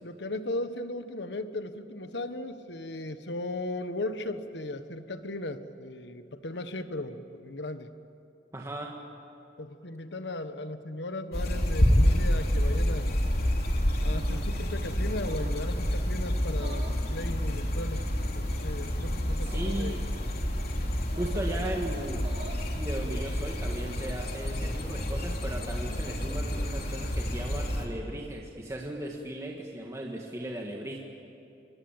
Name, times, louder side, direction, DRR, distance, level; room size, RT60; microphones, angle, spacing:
voice 1, 0.0-7.9 9.6-13.2 14.0-18.0 18.3-20.0 21.3-22.2, left 1 dB, 75° left, 10 dB, 1.4 m, -37 dB
voice 2, 8.5-9.0 19.4-20.0 21.2-22.3 22.8-31.0, right 1 dB, 20° right, 0 dB, 1.9 m, -37 dB
sound 1, 11.3-27.9, equal, 60° left, 3.2 m, -28 dB
sound 2, 14.1-14.5 15.2-15.7 16.5-17.0 18.0-18.5 19.3-19.7 21.1-21.5 22.1-22.7 23.3-23.9, right 2 dB, 40° right, 4.6 m, -47 dB
27.0 x 23.5 x 9.0 m, 2.8 s
head